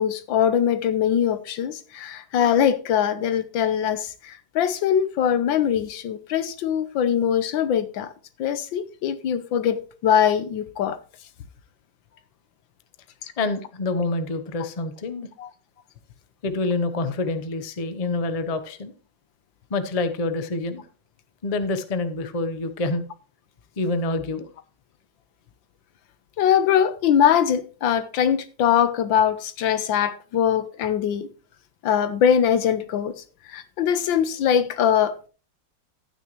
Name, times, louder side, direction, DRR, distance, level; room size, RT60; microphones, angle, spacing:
voice 1, 0.0-8.1 8.4-11.0 15.4-15.5 26.4-31.3 31.8-33.1 33.5-35.3, left 9 dB, 85° left, 1.6 m, -22 dB
voice 2, 13.4-15.3 16.4-18.9 19.7-20.9 21.4-23.0 23.8-24.5, left 3 dB, 40° left, 0.5 m, -27 dB
12.0 x 9.2 x 3.1 m
omnidirectional pair, 2.0 m